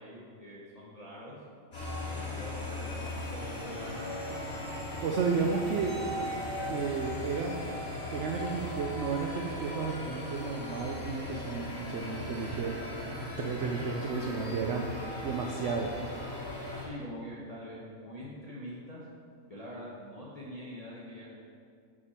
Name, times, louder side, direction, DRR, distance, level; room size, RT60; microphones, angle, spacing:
voice 1, 0.0-1.4 2.1-4.2 16.8-19.0 19.5-21.3, equal, 30° left, -7 dB, 1.0 m, -44 dB
sound 1, 1.7-16.8, left 1 dB, 80° left, 2.7 m, -38 dB
voice 2, 5.0-6.0 6.7-7.7 8.1-12.7 13.4-14.9 15.2-15.9, right 5 dB, 65° right, 1 dB, 0.8 m, -32 dB
9.6 x 4.9 x 4.3 m, 2.2 s
omnidirectional pair, 1.5 m